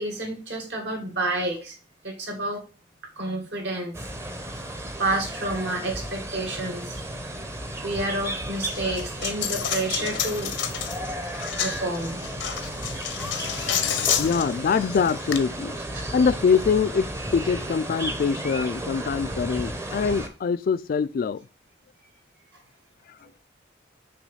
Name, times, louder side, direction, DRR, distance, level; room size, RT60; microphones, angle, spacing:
voice 1, 0.0-1.8 2.0-2.6 3.2-3.9 5.0-7.0 7.8-10.5 11.6-12.2 15.9-16.1, right 2 dB, 70° right, 2.1 m, -29 dB
sound 1, 3.9-20.3, right 1 dB, 15° right, 0.7 m, -34 dB
Coin (dropping), 8.7-15.4, left 9 dB, 80° left, 0.7 m, -30 dB
voice 2, 14.2-15.8 16.1-21.4, left 5 dB, 50° left, 0.3 m, -24 dB
6.1 x 3.1 x 5.6 m
head